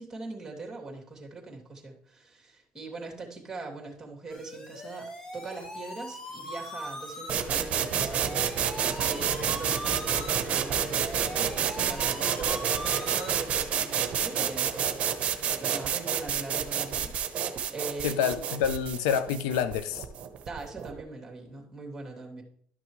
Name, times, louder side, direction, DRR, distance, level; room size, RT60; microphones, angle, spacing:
voice 1, 0.0-5.1 5.3-15.2 15.6-18.4 20.4-22.4, right 3 dB, 15° right, 2.7 m, -41 dB
sound 1, 4.3-13.3, left 1 dB, 25° left, 1.7 m, -41 dB
sound 2, 7.3-21.0, right 8 dB, 50° right, 0.9 m, -29 dB
voice 2, 18.0-20.0, left 8 dB, 90° left, 0.6 m, -28 dB
12.0 x 6.0 x 3.2 m
supercardioid pair, 100°, 3 cm